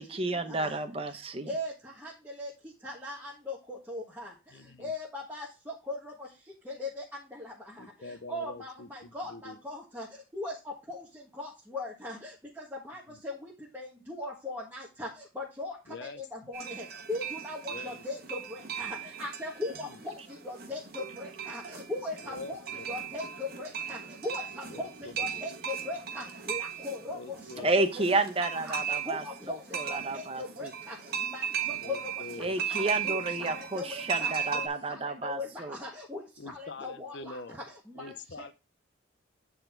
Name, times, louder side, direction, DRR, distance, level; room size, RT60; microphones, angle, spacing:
voice 1, 0.0-1.5 27.6-30.7 32.4-35.8, right 2 dB, 30° right, 8 dB, 0.8 m, -31 dB
voice 2, 1.4-2.1 2.4-2.5 2.8-4.3 4.8-6.3 6.6-7.0 7.3-7.5 8.0-10.1 10.3-10.5 10.9-11.0 11.4-15.1 15.3-15.7 16.0-22.6 22.9-27.4 27.9-28.0 28.6-31.0 31.2-31.4 31.8-32.0 32.8-34.6 34.9-37.4 37.9-38.1, left 2 dB, 10° right, -5 dB, 1.5 m, -39 dB
voice 3, 4.5-4.9 7.8-9.6 13.1-13.2 15.9-16.2 17.7-18.0 19.8-20.0 22.2-23.0 24.7-25.1 27.1-27.7 31.7-32.6 36.4-37.6 37.9-38.5, left 3 dB, 55° left, 12 dB, 0.7 m, -45 dB
sound 1, 16.5-34.7, right 8 dB, 45° right, 1.3 m, -37 dB
9.3 x 4.1 x 4.4 m, 0.30 s
head